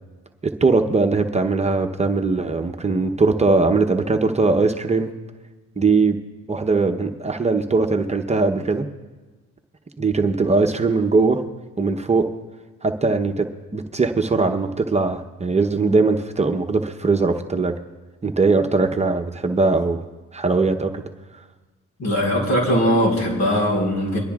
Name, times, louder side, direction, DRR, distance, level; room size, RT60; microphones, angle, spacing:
voice 1, 0.6-5.1 5.8-6.2 6.5-8.9 10.0-11.4 11.8-12.3 12.8-13.5 13.7-17.7 18.2-20.0 20.3-21.0, right 3 dB, 20° right, 4 dB, 0.8 m, -20 dB
voice 2, 22.0-24.2, equal, 65° left, 0 dB, 4.4 m, -20 dB
24.0 x 12.0 x 2.4 m, 1.3 s
cardioid pair, 90°, 30 cm